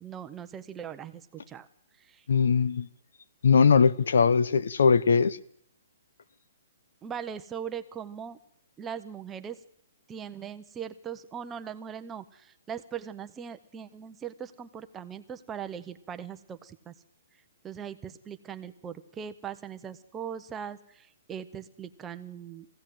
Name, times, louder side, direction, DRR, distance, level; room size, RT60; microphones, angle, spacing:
voice 1, 0.0-1.7 2.0-2.3 7.0-8.4 8.8-9.6 10.1-16.9 17.6-22.7, right 8 dB, 10° right, 0.8 m, -40 dB
voice 2, 2.3-2.9 3.4-5.4, left 5 dB, 75° left, 1.0 m, -21 dB
22.5 x 16.0 x 7.7 m
hypercardioid pair, 170°, 0 cm